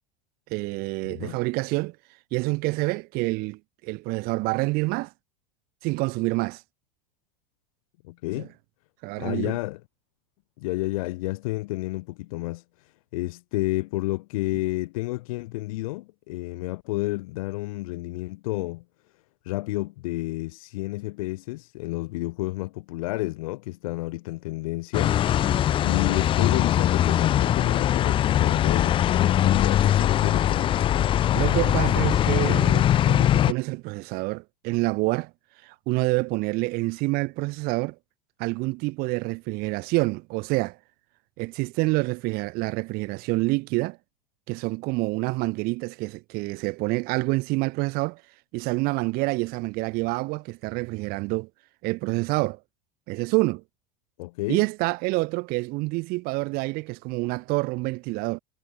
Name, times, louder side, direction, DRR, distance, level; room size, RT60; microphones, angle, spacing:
voice 1, 0.5-2.0 2.3-5.1 5.8-6.6 8.4-8.5 9.0-9.6 31.3-35.3 35.6-38.0 38.4-40.8 41.4-44.0 44.5-48.2 48.5-51.5 51.8-52.6 53.1-53.6 54.5-58.4, right 24 dB, 50° right, 2.1 m, -27 dB
voice 2, 8.1-8.5 9.2-9.8 10.6-12.6 13.1-18.8 19.5-25.2 25.8-30.8 54.2-54.6, left 20 dB, 60° left, 3.6 m, -30 dB
sound 1, 24.9-33.5, left 11 dB, 25° left, 0.5 m, -21 dB
figure-of-eight pair, 80°, 20 cm